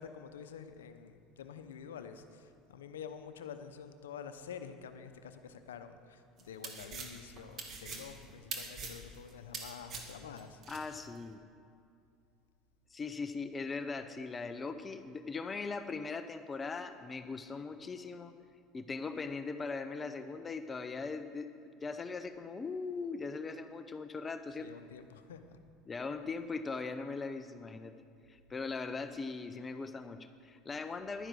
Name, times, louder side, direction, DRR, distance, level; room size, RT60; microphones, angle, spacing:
voice 1, 0.0-10.9 24.6-25.6, left 7 dB, 85° left, 9 dB, 0.7 m, -48 dB
sound 1, 6.4-10.8, right 4 dB, 45° right, 2.0 m, -43 dB
voice 2, 10.7-11.4 12.9-18.3 18.7-24.7 25.9-27.9 28.3-31.3, left 4 dB, 25° left, 10 dB, 0.6 m, -40 dB
11.0 x 10.0 x 6.2 m, 2.4 s
hypercardioid pair, 80°, 0 cm